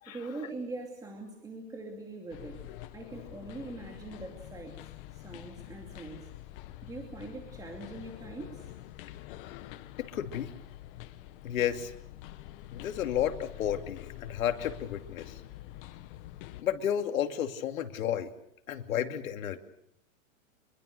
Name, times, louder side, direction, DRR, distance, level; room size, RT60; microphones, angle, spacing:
voice 1, 0.1-6.3 6.8-8.7, right 2 dB, 10° right, 1 dB, 2.6 m, -43 dB
sound 1, 2.3-16.6, left 14 dB, 45° left, 1.5 m, -46 dB
voice 2, 10.0-10.5 11.4-11.9 12.7-15.4 16.6-18.3 18.7-19.6, left 10 dB, 85° left, 6 dB, 2.7 m, -32 dB
26.0 x 22.5 x 6.6 m, 0.75 s
supercardioid pair, 160°, 40 cm